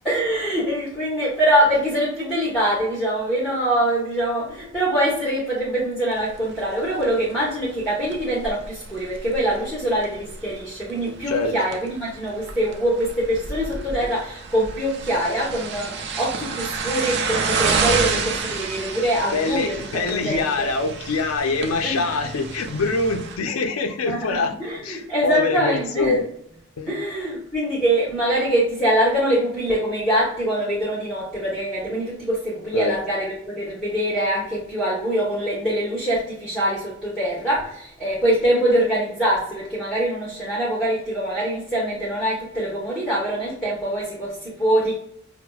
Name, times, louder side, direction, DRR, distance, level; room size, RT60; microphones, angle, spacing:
voice 1, 0.0-20.7 21.8-22.0 24.0-24.3 24.6-26.2 26.9-44.9, right 1 dB, ahead, -9 dB, 0.9 m, -24 dB
sound 1, 6.1-23.4, right 5 dB, 50° right, 0.5 m, -30 dB
voice 2, 19.3-24.5 24.8-26.3 26.8-26.9 32.7-32.9, left 3 dB, 85° left, 5 dB, 0.5 m, -24 dB
5.8 x 2.1 x 2.3 m, 0.70 s
head